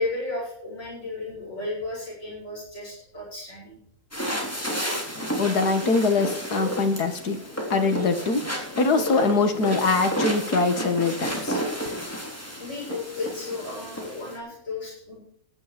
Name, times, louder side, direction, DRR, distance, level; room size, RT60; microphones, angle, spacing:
voice 1, 0.0-3.8 12.4-15.2, left 3 dB, 85° left, -5 dB, 8.4 m, -34 dB
sound 1, 4.1-14.4, equal, 10° left, 3.5 m, -31 dB
voice 2, 5.1-7.4 7.7-11.6, left 3 dB, 60° left, 7 dB, 2.3 m, -23 dB
15.0 x 11.0 x 5.3 m, 0.66 s
omnidirectional pair, 2.0 m